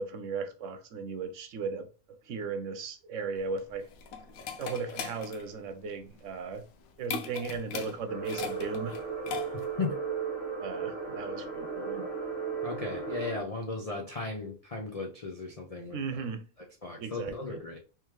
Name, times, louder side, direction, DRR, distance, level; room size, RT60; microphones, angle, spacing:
voice 1, 0.0-1.9 2.3-3.9 4.6-6.6 7.0-9.0 10.6-12.1 15.9-16.4 17.0-17.6, right 4 dB, 65° right, 1.0 m, -36 dB
sound 1, 3.4-9.8, left 6 dB, 85° left, 1.1 m, -40 dB
sound 2, 8.1-13.4, right 5 dB, 50° left, 1.3 m, -35 dB
voice 2, 12.6-16.2 16.8-17.8, left 3 dB, 70° left, 0.3 m, -36 dB
3.6 x 3.0 x 3.0 m
omnidirectional pair, 1.5 m